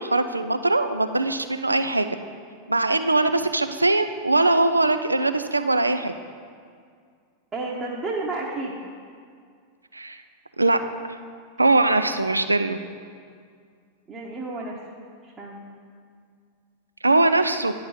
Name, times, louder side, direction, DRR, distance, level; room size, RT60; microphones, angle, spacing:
voice 1, 0.0-2.1 2.7-6.1 9.9-10.2 10.6-10.8 11.6-12.8 17.0-17.7, right 2 dB, 80° right, 9 dB, 0.3 m, -21 dB
voice 2, 7.5-8.8 14.1-14.8 15.2-15.6, right 2 dB, 25° right, -4 dB, 0.9 m, -31 dB
10.0 x 3.9 x 5.5 m, 2.1 s
figure-of-eight pair, 90°, 0 cm